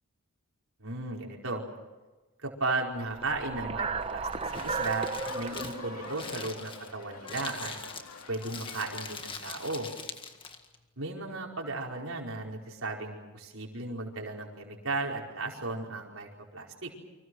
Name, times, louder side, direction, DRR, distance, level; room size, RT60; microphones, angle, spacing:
voice 1, 0.8-1.6 2.4-5.1 5.3-7.7 8.3-9.9 11.0-17.0, right 3 dB, 65° right, -1 dB, 5.0 m, -35 dB
sound 1, 3.0-7.3, right 4 dB, 25° right, 0.9 m, -35 dB
Crumpling crinkling, 4.0-10.8, left 4 dB, 25° left, 1.8 m, -43 dB
sound 2, 4.4-9.4, left 4 dB, 80° left, 2.6 m, -46 dB
29.5 x 25.5 x 6.4 m, 1.2 s
head